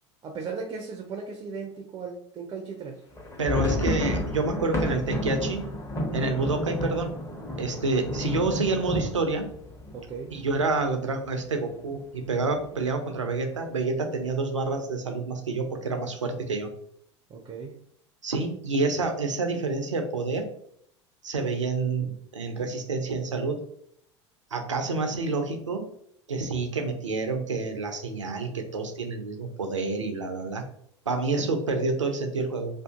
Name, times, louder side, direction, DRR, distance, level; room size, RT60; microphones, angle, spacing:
voice 1, 0.2-3.0 9.9-10.4 17.3-17.8, right 5 dB, 25° right, 3 dB, 0.4 m, -37 dB
sound 1, 3.1-10.8 11.2-11.3 11.5-11.8 12.3-12.8, left 1 dB, 20° left, 0.8 m, -31 dB
voice 2, 3.4-5.7 6.1-7.1 7.6-9.5 10.3-16.7 18.2-20.5 21.2-23.6 24.5-25.9 26.3-30.6 31.1-32.8, right 3 dB, 85° right, 5 dB, 0.5 m, -28 dB
2.6 x 2.4 x 2.3 m, 0.67 s
figure-of-eight pair, 75°, 15 cm